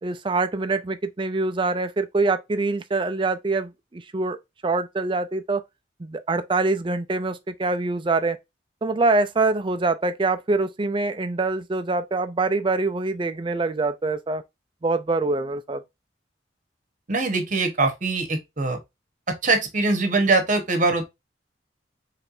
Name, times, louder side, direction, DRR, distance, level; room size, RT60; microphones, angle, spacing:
voice 1, 0.0-4.4 4.6-5.6 6.0-8.4 8.8-14.4 14.8-15.8, right 3 dB, 25° right, 0.4 m, -24 dB
voice 2, 17.1-18.8 19.3-21.0, right 3 dB, 40° right, 1.1 m, -22 dB
4.5 x 3.3 x 2.5 m
head